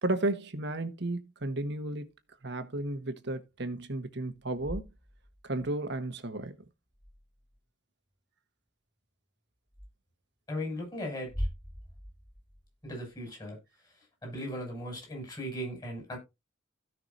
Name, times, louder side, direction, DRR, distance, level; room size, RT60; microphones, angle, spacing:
voice 1, 0.0-2.1 2.4-4.9 5.4-6.6, right 2 dB, 60° right, 1.4 m, -33 dB
sound 1, 4.3-5.8 6.9-7.6 9.7-9.9 11.2-13.2, equal, ahead, 0.7 m, -41 dB
voice 2, 10.5-11.5 12.8-13.6 14.2-16.2, equal, 20° left, 6.6 m, -37 dB
16.5 x 6.0 x 2.7 m
head